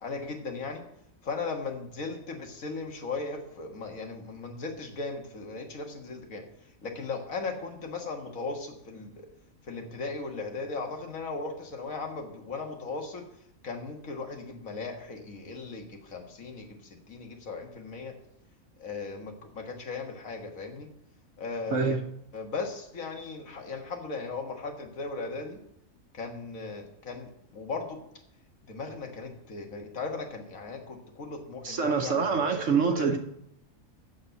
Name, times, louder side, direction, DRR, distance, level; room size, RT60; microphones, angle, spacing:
voice 1, 0.0-0.9 1.2-6.4 6.8-9.3 9.6-13.2 13.6-18.1 18.8-20.9 21.4-22.0 22.3-25.6 26.1-28.0 28.7-33.2, left 4 dB, 80° left, 3 dB, 2.0 m, -37 dB
voice 2, 31.6-33.2, right 5 dB, 65° right, 3 dB, 1.3 m, -25 dB
7.5 x 6.7 x 8.1 m, 0.74 s
omnidirectional pair, 1.4 m